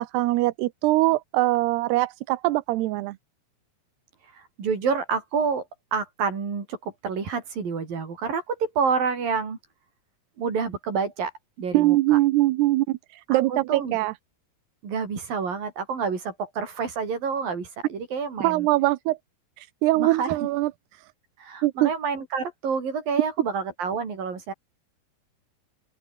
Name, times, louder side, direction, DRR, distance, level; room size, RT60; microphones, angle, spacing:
voice 1, 0.0-3.2 11.7-14.1 18.4-19.2 19.6-20.7 21.6-21.9, right 18 dB, 75° right, 2.8 m, -22 dB
voice 2, 4.3-5.7 5.9-9.6 10.4-11.3 11.6-12.2 13.3-14.0 14.8-18.7 20.0-20.3 21.4-24.5, right 5 dB, 55° right, 6.7 m, -28 dB
open air
omnidirectional pair, 5.0 m